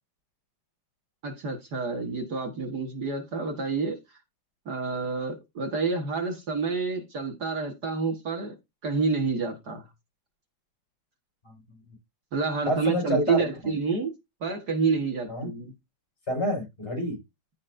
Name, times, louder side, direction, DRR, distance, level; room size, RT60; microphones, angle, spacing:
voice 1, 1.2-4.0 4.7-8.5 8.8-9.8 12.3-14.1 14.4-15.7, right 4 dB, 55° right, 2.1 m, -28 dB
voice 2, 11.4-11.9 12.7-13.4 13.6-13.7 15.3-15.5 16.3-17.2, equal, 30° left, 5.6 m, -28 dB
15.5 x 5.3 x 2.6 m
omnidirectional pair, 2.2 m